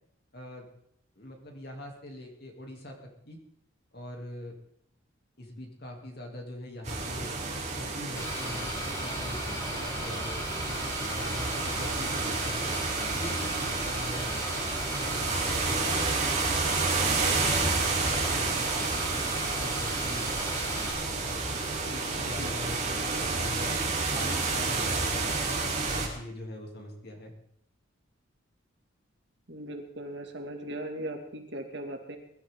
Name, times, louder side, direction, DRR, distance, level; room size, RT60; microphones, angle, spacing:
voice 1, 0.3-0.7 1.2-3.0 3.2-3.4 3.9-4.5 5.4-7.3 7.7-12.7 13.1-14.3 14.9-16.1 16.6-20.3 21.1-23.8 24.1-27.3, left 1 dB, 50° left, 1 dB, 3.3 m, -42 dB
sound 1, 6.8-26.1, right 3 dB, 35° right, 4.1 m, -30 dB
sound 2, 8.2-20.9, equal, 15° left, 4.6 m, -36 dB
voice 2, 29.5-32.2, right 1 dB, 60° right, 2 dB, 2.6 m, -38 dB
21.5 x 12.5 x 3.9 m, 0.70 s
head